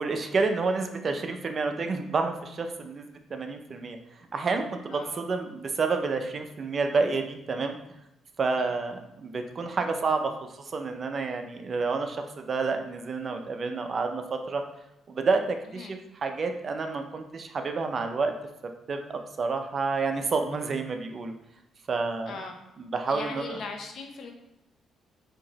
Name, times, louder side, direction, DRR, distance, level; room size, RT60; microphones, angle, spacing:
voice 1, 0.0-4.0 4.3-7.8 8.4-14.6 15.1-18.3 18.9-21.3 21.9-22.4 22.8-23.6, right 4 dB, 45° right, 6 dB, 0.4 m, -29 dB
voice 2, 4.9-5.2 8.6-8.8 15.7-15.9 22.3-22.6 23.1-24.3, left 4 dB, 65° left, 3 dB, 0.6 m, -39 dB
4.4 x 2.8 x 2.9 m, 0.86 s
cardioid pair, 90°, 0 cm